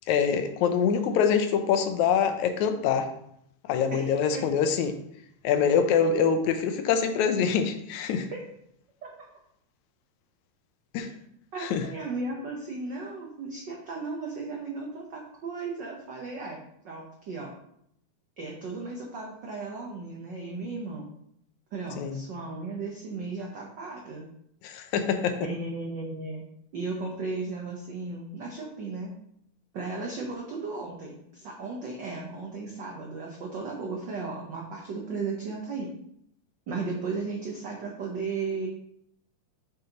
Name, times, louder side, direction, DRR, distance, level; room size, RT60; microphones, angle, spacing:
voice 1, 0.1-3.1 3.7-5.0 5.4-8.3 10.9-11.1 11.6-11.8 22.0-22.2 24.6-25.4, left 7 dB, 80° left, 7 dB, 2.0 m, -24 dB
voice 2, 3.9-4.4 9.0-9.1 11.5-16.6 16.8-17.5 18.4-21.1 21.7-24.3 25.4-26.4 26.7-29.1 29.7-35.9 36.7-38.7, right 3 dB, 80° right, -1 dB, 1.0 m, -35 dB
7.1 x 6.5 x 2.9 m, 0.72 s
omnidirectional pair, 3.4 m